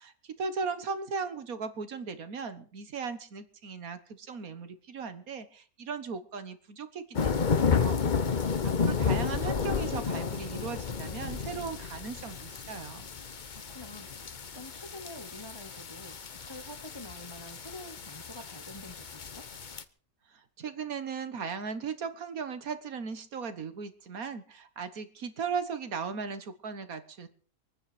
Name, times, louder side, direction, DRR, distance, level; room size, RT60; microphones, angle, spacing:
voice 1, 0.0-13.1 20.3-27.3, right 5 dB, 80° right, 11 dB, 1.8 m, -37 dB
sound 1, 7.1-19.8, left 6 dB, 40° left, 0.9 m, -32 dB
voice 2, 13.5-19.5, left 1 dB, 20° left, 7 dB, 1.1 m, -47 dB
24.0 x 9.7 x 5.0 m, 0.43 s
omnidirectional pair, 1.5 m